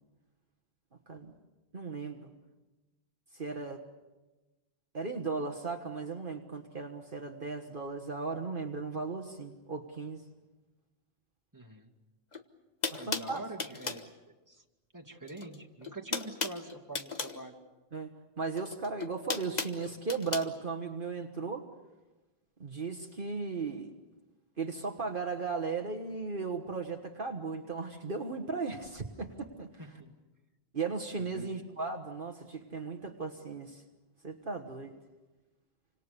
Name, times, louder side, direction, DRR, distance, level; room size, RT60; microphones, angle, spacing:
voice 1, 1.7-2.3 3.3-3.8 4.9-10.2 12.9-13.4 17.9-18.1 18.4-21.6 22.6-23.9 24.6-29.7 30.7-33.8 34.2-34.9, right 4 dB, 50° right, 4 dB, 1.6 m, -36 dB
voice 2, 11.5-11.9 13.0-14.1 14.5-14.6 14.9-17.6 29.8-30.1 31.2-31.5, right 2 dB, 15° right, 2 dB, 2.4 m, -45 dB
sound 1, 12.3-12.4 12.8-14.1 15.3-15.6 15.8-17.4 18.5-20.5, left 4 dB, 40° left, 1.5 m, -36 dB
29.0 x 26.0 x 6.9 m, 1.2 s
omnidirectional pair, 1.1 m